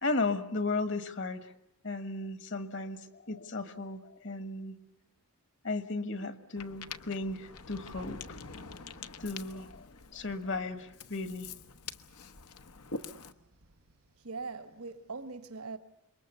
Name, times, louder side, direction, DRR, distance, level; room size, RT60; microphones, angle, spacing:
voice 1, 0.0-1.5 1.8-4.8 5.6-8.2 9.2-9.8 10.1-11.5, left 3 dB, 55° left, 1.5 m, -35 dB
Ocean, 6.6-13.3, left 4 dB, 85° left, 1.1 m, -46 dB
voice 2, 14.2-15.8, right 4 dB, 75° right, 1.2 m, -41 dB
27.5 x 22.5 x 6.8 m
head